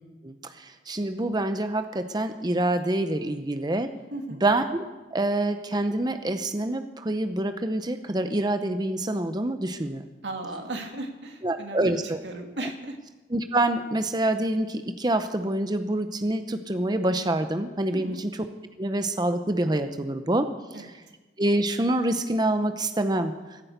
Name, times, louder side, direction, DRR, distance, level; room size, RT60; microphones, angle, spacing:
voice 1, 0.2-3.9 4.4-10.1 11.4-12.2 13.3-18.4 18.8-20.5 21.4-23.3, right 1 dB, 25° right, 8 dB, 0.7 m, -26 dB
voice 2, 4.1-4.4 10.2-13.0 17.9-18.2 20.7-20.9, right 2 dB, 90° right, 4 dB, 2.1 m, -36 dB
17.0 x 10.0 x 8.2 m, 1.2 s
head